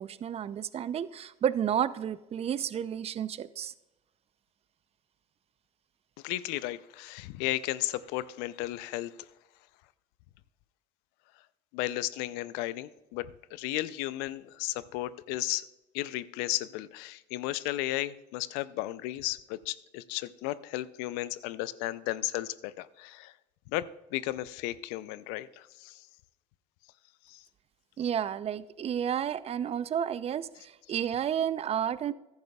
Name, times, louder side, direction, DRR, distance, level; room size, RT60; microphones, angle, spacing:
voice 1, 0.0-3.7 28.0-32.1, right 9 dB, 40° right, 16 dB, 0.5 m, -31 dB
voice 2, 6.2-9.1 11.7-15.6 15.9-23.3 23.7-26.0 27.3-27.4, left 16 dB, 75° left, 17 dB, 0.5 m, -34 dB
14.5 x 10.5 x 2.3 m, 1.0 s
hypercardioid pair, 75°, 17 cm